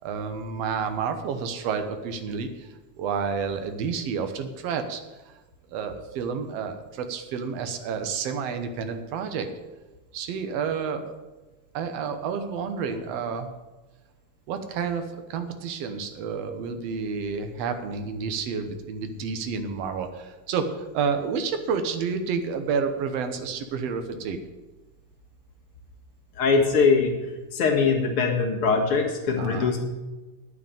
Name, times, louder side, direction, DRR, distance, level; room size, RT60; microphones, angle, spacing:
voice 1, 0.0-5.4 5.7-9.5 10.1-11.1 11.7-13.5 14.5-24.4 29.4-29.7, right 6 dB, 65° right, 7 dB, 1.7 m, -30 dB
voice 2, 26.4-27.1 27.5-29.8, left 5 dB, 50° left, 0 dB, 2.2 m, -22 dB
9.8 x 6.6 x 8.8 m, 1.2 s
omnidirectional pair, 3.8 m